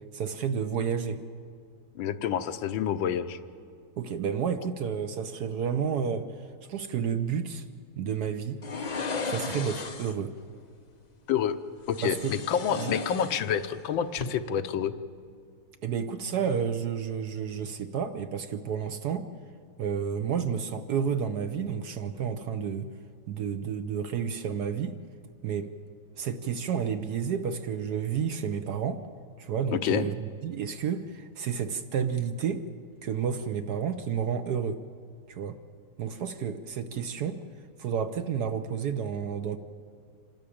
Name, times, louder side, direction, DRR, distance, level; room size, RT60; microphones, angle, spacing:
voice 1, 0.1-1.2 4.0-6.3 6.7-7.6 8.0-8.6 9.2-10.3 12.0-12.3 12.7-12.9 15.8-19.3 19.8-22.9 23.3-25.0 25.4-25.7 26.2-29.0 29.4-32.7 33.0-34.8 35.3-35.6 36.0-37.4 37.8-39.6, right 7 dB, 65° right, 9 dB, 1.1 m, -30 dB
voice 2, 2.0-3.4 11.3-11.6 11.9-14.9 29.7-30.1, left 8 dB, 75° left, 10 dB, 1.5 m, -28 dB
sound 1, 8.6-10.3 11.9-13.8 14.1-14.3, left 4 dB, 60° left, 0.4 m, -35 dB
26.5 x 12.5 x 8.6 m, 2.3 s
omnidirectional pair, 2.2 m